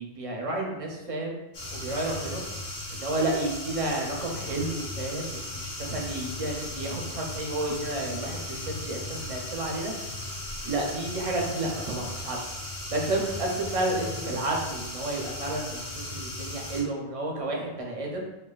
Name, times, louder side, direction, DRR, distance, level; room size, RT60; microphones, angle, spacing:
voice 1, 0.0-1.4 1.7-2.4 2.9-9.9 10.6-12.4 12.9-18.3, right 2 dB, 45° right, -1 dB, 0.5 m, -31 dB
sound 1, 1.5-16.8, left 1 dB, 50° left, 0.9 m, -37 dB
4.6 x 2.2 x 2.3 m, 0.99 s
omnidirectional pair, 1.1 m